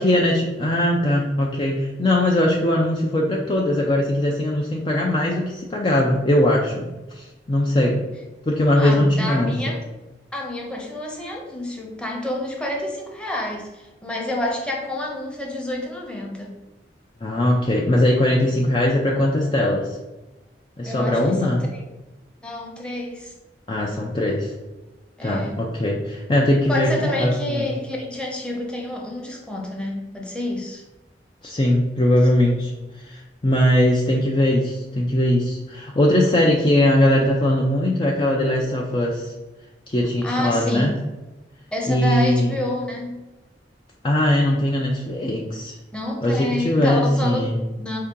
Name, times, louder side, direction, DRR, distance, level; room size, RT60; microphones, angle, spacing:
voice 1, 0.0-6.9 7.1-8.0 8.5-9.7 17.2-20.0 20.8-21.6 23.7-24.5 25.2-27.7 31.4-32.7 33.0-39.3 39.9-40.9 41.9-42.5 44.0-45.8 46.2-47.6, left 1 dB, 30° left, -1 dB, 0.4 m, -20 dB
voice 2, 8.8-9.8 10.3-16.5 20.8-21.8 22.4-23.3 25.2-25.6 26.7-30.8 40.2-41.0 41.7-43.2 45.9-47.4 47.8-48.0, left 1 dB, 5° left, -2 dB, 0.8 m, -28 dB
4.4 x 2.8 x 3.6 m, 1.1 s
head